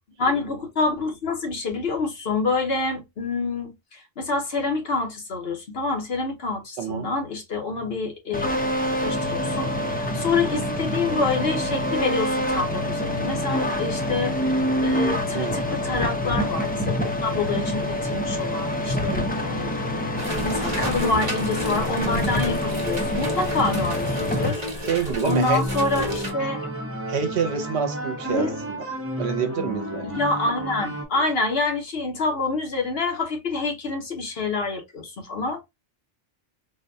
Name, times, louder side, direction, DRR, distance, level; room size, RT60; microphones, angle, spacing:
voice 1, 0.2-8.5 9.0-19.8 20.4-26.7 28.3-28.5 30.0-35.6, left 3 dB, 65° left, 1.1 m, -27 dB
voice 2, 6.8-7.1 15.3-15.6 24.8-25.6 27.1-28.8 29.2-30.1, right 7 dB, 75° right, 1.0 m, -27 dB
sound 1, 8.3-24.5, left 1 dB, 10° left, 0.5 m, -26 dB
sound 2, 20.2-26.3, equal, 40° right, 1.1 m, -31 dB
sound 3, 25.2-31.0, equal, 15° right, 0.9 m, -31 dB
3.9 x 2.2 x 2.6 m
omnidirectional pair, 1.2 m